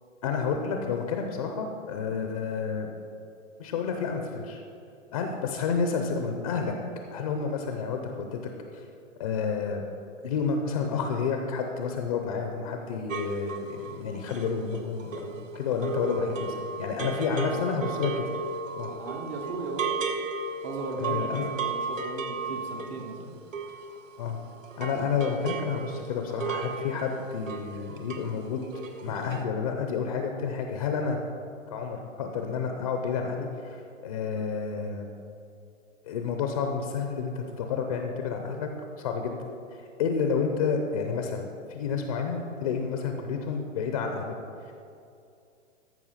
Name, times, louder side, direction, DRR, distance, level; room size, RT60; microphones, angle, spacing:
voice 1, 0.2-2.9 3.6-4.6 5.1-6.7 7.1-8.4 8.7-8.8 9.2-9.8 10.2-18.2 18.8-18.9 21.0-21.5 24.2-24.4 24.8-28.6 29.0-31.2 31.7-35.1 36.0-38.7 39.0-39.3 40.0-44.4 44.6-44.7, left 5 dB, 30° left, 4 dB, 0.6 m, -30 dB
sound 1, 13.1-24.4 24.6-28.4 28.6-29.0 29.3-29.4, right 4 dB, 80° right, 1.4 m, -35 dB
voice 2, 18.9-19.9 20.6-23.3 29.1-29.2, right 2 dB, 10° right, 3 dB, 0.5 m, -37 dB
14.0 x 5.5 x 5.6 m, 2.5 s
hypercardioid pair, 155°, 38 cm